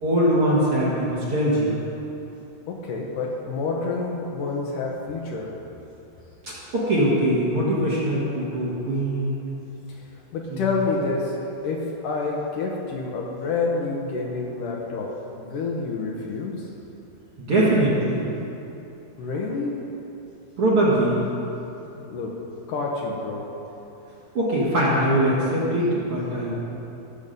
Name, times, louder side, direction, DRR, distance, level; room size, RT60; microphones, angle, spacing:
voice 1, 0.0-1.8 6.7-9.4 10.5-10.6 17.4-18.2 20.6-21.2 24.3-26.5, right 1 dB, 45° right, -7 dB, 2.2 m, -22 dB
voice 2, 2.7-5.5 9.9-10.0 10.3-11.3 11.6-16.7 19.2-19.8 22.0-22.4 22.7-23.5, left 3 dB, 70° left, -1 dB, 2.3 m, -28 dB
17.0 x 7.1 x 5.3 m, 2.9 s
omnidirectional pair, 4.5 m